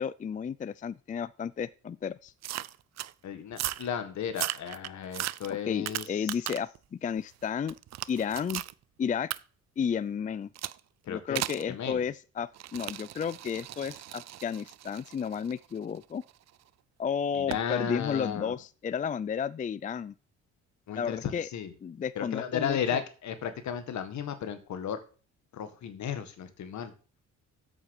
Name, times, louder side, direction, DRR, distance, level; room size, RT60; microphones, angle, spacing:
voice 1, 0.0-2.3 5.7-7.7 8.1-8.6 9.0-9.3 9.8-10.5 11.1-16.2 17.0-20.1 21.0-21.5 21.8-23.0, left 7 dB, 25° left, 0.4 m, -32 dB
sound 1, 2.4-3.1 3.5-3.9 4.3-6.8 7.2-8.7 9.3-9.4 10.6-10.8 11.4-11.7 12.5-16.5 17.5-17.7, right 14 dB, 60° right, 0.5 m, -37 dB
voice 2, 3.2-6.5 11.0-11.4 11.7-12.0 17.3-18.6 20.9-21.7 22.1-25.0 25.5-26.9, left 8 dB, 70° left, 1.8 m, -34 dB
8.2 x 7.2 x 6.6 m
cardioid pair, 90°, 30 cm